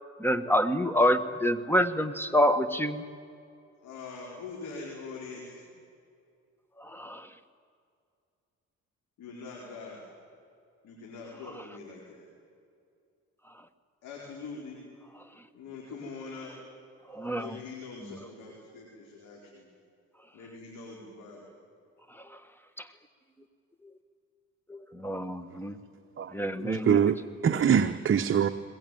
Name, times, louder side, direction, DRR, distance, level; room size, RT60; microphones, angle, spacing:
voice 1, 0.2-3.0 6.8-7.3 17.1-17.6 18.0-18.2 22.1-22.4 22.8-22.9 23.8-23.9 24.7-25.8 26.3-27.0, equal, 5° left, 11 dB, 1.4 m, -27 dB
voice 2, 3.8-5.7 9.2-10.0 10.8-12.3 14.0-14.8 15.5-16.5 17.3-19.7 20.3-21.5, left 4 dB, 80° left, -2 dB, 4.8 m, -43 dB
voice 3, 26.6-28.5, right 8 dB, 45° right, 7 dB, 0.9 m, -24 dB
21.5 x 21.0 x 9.3 m, 2.4 s
cardioid pair, 90°, 30 cm